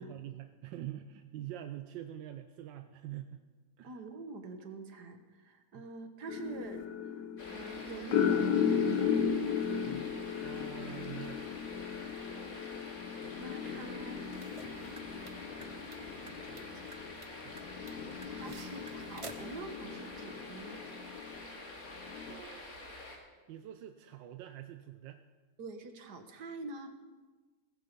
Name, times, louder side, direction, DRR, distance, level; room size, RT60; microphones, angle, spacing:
voice 1, 0.0-3.4 3.8-4.0 5.7-5.9 10.4-11.4 17.4-17.6 18.5-18.6 22.3-22.8 23.5-25.2, right 12 dB, 85° right, 8 dB, 1.4 m, -45 dB
voice 2, 3.8-9.3 13.4-14.4 15.0-15.2 15.8-17.0 18.3-20.9 25.6-26.9, right 3 dB, 65° right, 7 dB, 1.8 m, -46 dB
sound 1, 6.3-21.4 22.0-22.3, left 7 dB, 75° left, 1.7 m, -36 dB
sound 2, 7.4-23.2, left 2 dB, 50° left, 2.9 m, -48 dB
sound 3, 14.1-19.6, right 3 dB, 30° right, 0.6 m, -53 dB
16.5 x 15.0 x 5.3 m, 1.4 s
omnidirectional pair, 2.0 m